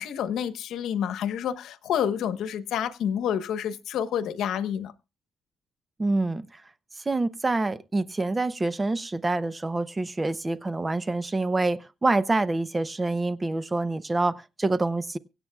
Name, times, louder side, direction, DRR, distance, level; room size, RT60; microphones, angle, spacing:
voice 1, 0.0-4.9, left 9 dB, 80° left, 1.1 m, -28 dB
voice 2, 6.0-6.5 7.1-15.2, right 2 dB, 15° right, 0.6 m, -26 dB
24.5 x 8.3 x 2.3 m
cardioid pair, 145°, 0 cm